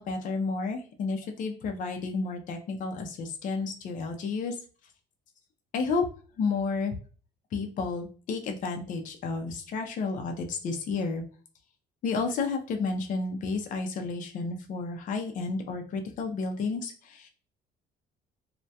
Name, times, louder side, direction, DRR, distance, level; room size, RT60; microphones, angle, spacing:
voice 1, 0.0-4.6 5.7-6.0 6.4-7.0 7.5-11.2 12.0-17.3, left 4 dB, 50° left, 4 dB, 0.5 m, -31 dB
2.2 x 2.1 x 2.7 m, 0.39 s
cardioid pair, 110°, 17 cm